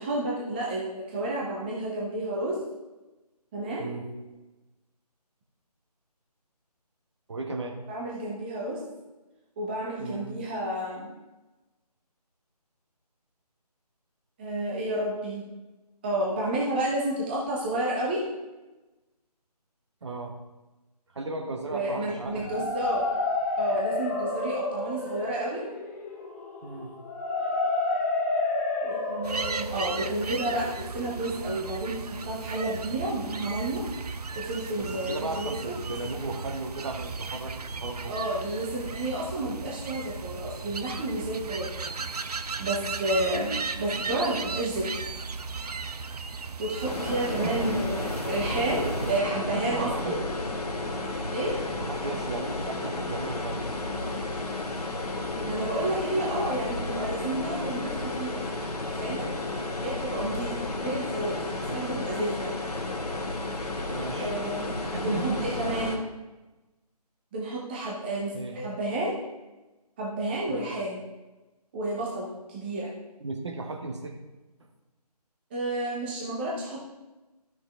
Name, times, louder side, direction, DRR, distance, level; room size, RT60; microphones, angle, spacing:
voice 1, 0.0-2.6 3.5-4.1 7.9-8.8 9.6-11.1 14.4-15.4 16.0-18.2 21.7-23.0 23.6-25.6 28.8-33.8 34.3-35.7 38.1-45.0 46.6-50.2 51.3-51.6 55.4-58.4 59.0-59.3 59.8-62.5 64.2-66.0 67.3-69.1 70.0-71.0 71.7-72.9 75.5-76.9, right 1 dB, 15° right, -4 dB, 0.9 m, -31 dB
voice 2, 7.3-7.8 10.0-10.3 20.0-20.3 21.1-22.7 26.6-27.0 34.8-38.2 47.3-47.8 48.6-50.2 51.7-53.7 61.7-61.9 63.9-64.3 64.7-65.3 68.3-68.6 70.5-70.7 73.2-74.2 74.6-74.7, right 2 dB, 45° right, 3 dB, 1.2 m, -36 dB
sound 1, 22.2-32.1, left 2 dB, 25° left, 1.0 m, -31 dB
sound 2, 29.2-49.2, right 4 dB, 70° right, 0.6 m, -36 dB
sound 3, 46.8-66.0, left 2 dB, 65° left, 1.6 m, -32 dB
12.0 x 6.4 x 3.6 m, 1.1 s
figure-of-eight pair, 160°, 21 cm